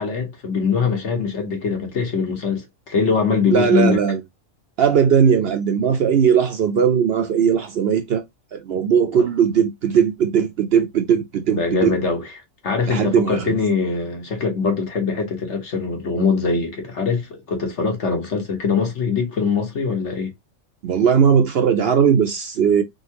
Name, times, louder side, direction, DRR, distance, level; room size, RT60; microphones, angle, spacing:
voice 1, 0.0-4.0 9.2-9.3 11.5-12.3 12.6-20.3, left 5 dB, 60° left, 1.6 m, -22 dB
voice 2, 3.5-4.2 4.8-8.2 8.5-12.0 12.9-13.6 20.8-22.8, right 7 dB, 60° right, 0.7 m, -18 dB
3.8 x 3.5 x 2.8 m
omnidirectional pair, 1.3 m